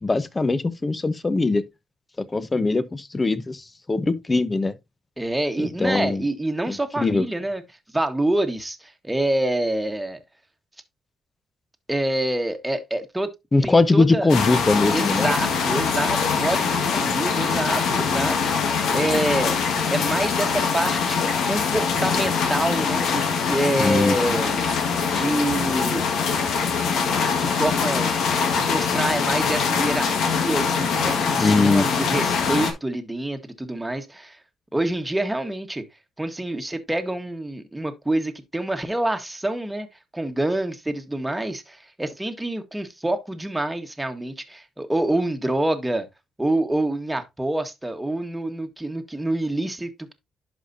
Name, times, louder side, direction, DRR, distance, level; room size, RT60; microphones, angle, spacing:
voice 1, 0.0-1.6 2.2-4.7 5.6-6.2 6.7-7.3 13.5-15.3 23.8-24.1 31.4-31.9, left 3 dB, 25° left, 0.8 m, -21 dB
voice 2, 5.2-7.6 7.9-10.2 11.9-13.3 13.6-14.4 14.9-18.4 18.6-19.6 19.9-24.5 25.1-26.1 27.3-28.2 28.5-34.4 34.7-35.8 36.2-39.9 40.1-46.1 46.4-50.1, right 1 dB, 10° right, 1.4 m, -26 dB
Rain hitting the roof and running down the gutter..., 14.3-32.7, left 5 dB, 75° left, 1.7 m, -23 dB
11.0 x 5.1 x 2.7 m
cardioid pair, 90°, 0 cm